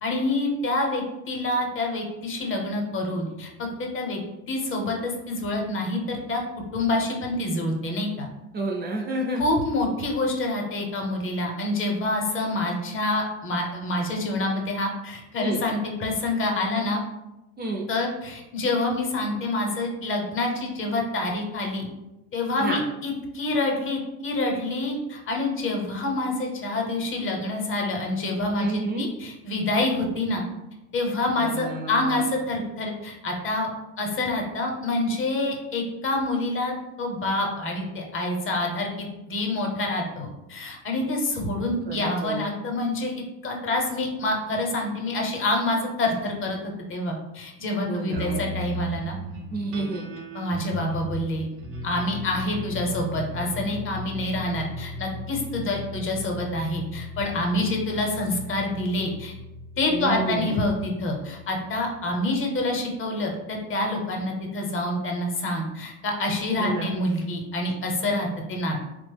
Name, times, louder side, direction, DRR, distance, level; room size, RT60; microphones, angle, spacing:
voice 1, 0.0-4.2 4.5-6.4 6.7-8.3 9.4-17.0 17.9-21.9 22.3-30.4 30.9-33.7 34.0-43.1 43.4-46.6 46.9-49.2 50.3-51.5 51.8-59.3 59.8-68.8, left 2 dB, 40° left, 1 dB, 0.7 m, -27 dB
voice 2, 8.5-9.4 15.4-15.6 17.6-17.9 22.6-22.8 28.6-29.1 31.4-32.2 41.9-42.4 47.9-48.5 49.5-50.1 59.9-60.6 66.6-66.9, right 2 dB, 30° right, 0 dB, 0.4 m, -30 dB
sound 1, 48.1-62.8, equal, 75° right, 0.7 m, -37 dB
2.9 x 2.0 x 3.3 m, 0.98 s
supercardioid pair, 105°, 34 cm